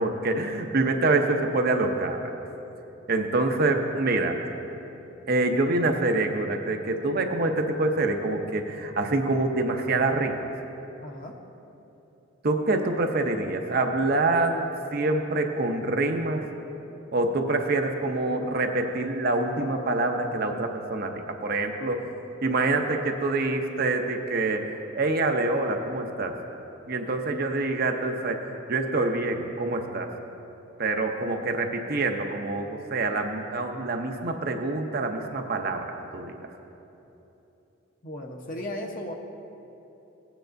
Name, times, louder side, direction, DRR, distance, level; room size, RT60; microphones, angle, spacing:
voice 1, 0.0-2.2 3.1-4.4 5.3-10.5 12.4-14.7 14.9-16.4 17.1-22.1 22.4-24.7 25.0-26.4 26.9-30.1 30.8-36.3, right 2 dB, 50° right, 4 dB, 0.7 m, -26 dB
voice 2, 11.0-11.4 38.0-39.1, left 1 dB, 45° left, 1 dB, 0.9 m, -36 dB
17.0 x 9.0 x 2.6 m, 3.0 s
head